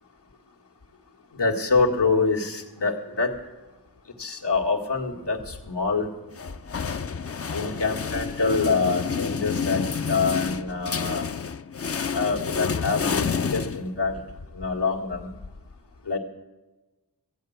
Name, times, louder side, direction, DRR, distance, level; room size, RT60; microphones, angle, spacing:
voice 1, 1.3-3.3 4.2-6.1 7.5-11.3 12.0-14.2 14.5-15.3 16.1-16.2, left 4 dB, 85° left, 1 dB, 1.9 m, -25 dB
sound 1, 6.3-14.3, left 6 dB, 35° left, 0.5 m, -29 dB
14.5 x 9.3 x 7.9 m, 1.1 s
wide cardioid pair, 55°, 41 cm